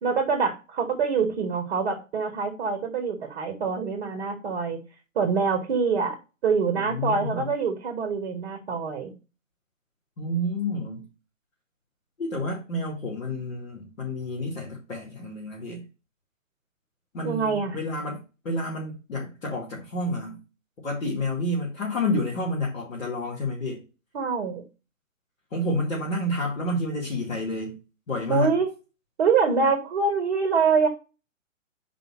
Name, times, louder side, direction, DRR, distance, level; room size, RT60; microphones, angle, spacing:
voice 1, 0.0-4.8 5.2-6.2 6.4-9.1 17.2-17.8 24.1-24.6 28.3-28.7 29.2-30.9, right 5 dB, 40° right, 1.6 m, -25 dB
voice 2, 6.8-7.5 10.2-11.1 12.2-15.8 17.1-18.2 18.4-20.4 20.8-23.8 25.5-27.8 28.1-28.5, left 1 dB, 75° left, 2.6 m, -29 dB
5.5 x 5.0 x 4.6 m
figure-of-eight pair, 135°, 40 cm